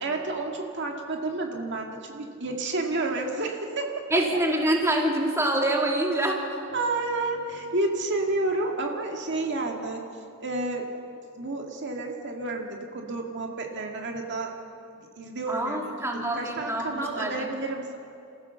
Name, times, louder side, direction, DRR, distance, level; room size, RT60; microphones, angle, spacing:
voice 1, 0.0-4.0 6.7-10.0 10.4-10.9 11.4-14.5 15.0-15.8 16.1-18.0, right 2 dB, 55° right, 2 dB, 2.0 m, -30 dB
voice 2, 4.1-6.4 15.5-16.9 17.2-17.5, right 1 dB, 15° right, 0 dB, 2.6 m, -25 dB
28.5 x 15.0 x 7.0 m, 2.6 s
head